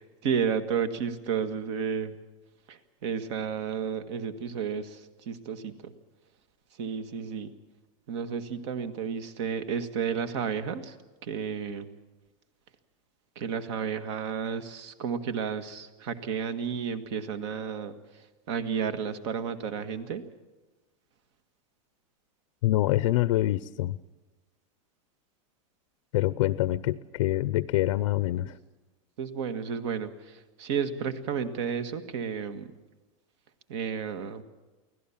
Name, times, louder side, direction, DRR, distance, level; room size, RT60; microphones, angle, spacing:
voice 1, 0.0-2.1 2.7-5.0 5.2-5.9 6.8-7.5 8.1-10.9 11.2-11.9 13.3-17.9 18.5-20.2 29.2-32.7 33.7-34.4, right 7 dB, 55° right, 10 dB, 1.7 m, -32 dB
voice 2, 22.6-24.0 26.1-28.6, left 15 dB, 65° left, 15 dB, 0.6 m, -25 dB
24.0 x 17.0 x 7.2 m, 1.2 s
supercardioid pair, 165°, 18 cm